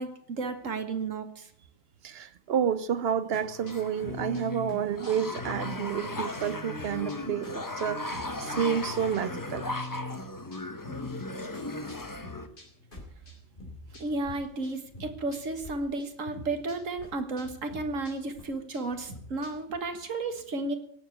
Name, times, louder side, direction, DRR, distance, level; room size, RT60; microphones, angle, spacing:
voice 1, 0.0-1.5 14.0-20.8, right 3 dB, 75° right, 1.9 m, -33 dB
voice 2, 2.0-9.7, right 8 dB, 55° right, 0.9 m, -30 dB
sound 1, 3.3-14.4 14.6-15.7 16.0-19.8, left 2 dB, 40° left, 3.8 m, -43 dB
sound 2, 3.5-12.5, left 2 dB, 15° left, 0.8 m, -37 dB
17.5 x 7.4 x 8.2 m
omnidirectional pair, 1.4 m